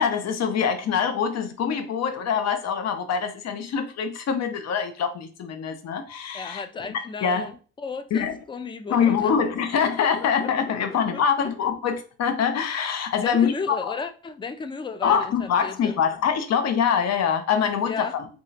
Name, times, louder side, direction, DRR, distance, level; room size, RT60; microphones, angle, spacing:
voice 1, 0.0-6.6 7.2-7.5 8.1-8.4 8.9-14.0 15.0-18.3, left 7 dB, 60° left, 0.7 m, -24 dB
voice 2, 6.3-9.3 10.2-10.5 11.1-11.5 13.2-16.0 17.8-18.2, left 4 dB, 15° left, 0.4 m, -34 dB
3.7 x 3.2 x 2.5 m
cardioid pair, 90°, 30 cm